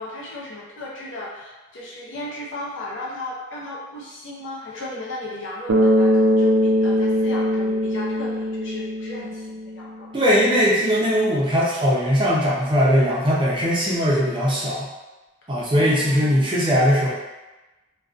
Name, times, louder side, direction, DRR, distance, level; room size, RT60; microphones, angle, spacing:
voice 1, 0.0-10.1 15.4-16.5, left 2 dB, 70° left, -5 dB, 0.6 m, -35 dB
Bass guitar, 5.7-9.9, equal, 85° right, 0.4 m, -21 dB
voice 2, 10.1-14.9 15.5-17.1, equal, 25° right, -6 dB, 0.5 m, -20 dB
2.4 x 2.2 x 2.4 m, 1.1 s
head